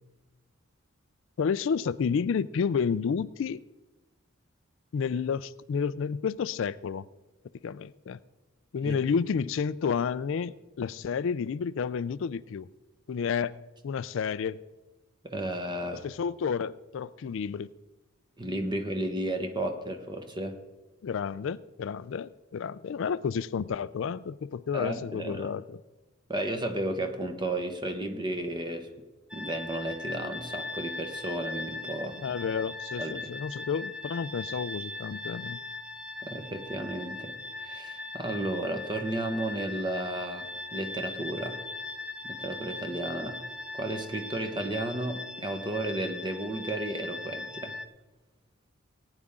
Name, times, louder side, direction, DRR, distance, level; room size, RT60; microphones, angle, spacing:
voice 1, 1.4-3.6 4.9-7.1 7.6-8.2 8.7-12.7 13.1-13.5 13.8-14.6 15.9-17.7 21.0-25.8 32.2-35.6, left 6 dB, 65° left, 17 dB, 0.4 m, -30 dB
voice 2, 15.2-16.0 18.4-20.6 24.7-25.5 26.3-28.9 29.3-32.2 33.0-33.3 36.2-41.6 42.2-43.4 43.7-47.8, right 1 dB, 20° right, 6 dB, 1.2 m, -33 dB
sound 1, 29.3-47.9, left 3 dB, 5° right, 0.7 m, -40 dB
18.5 x 9.9 x 3.7 m, 1.2 s
head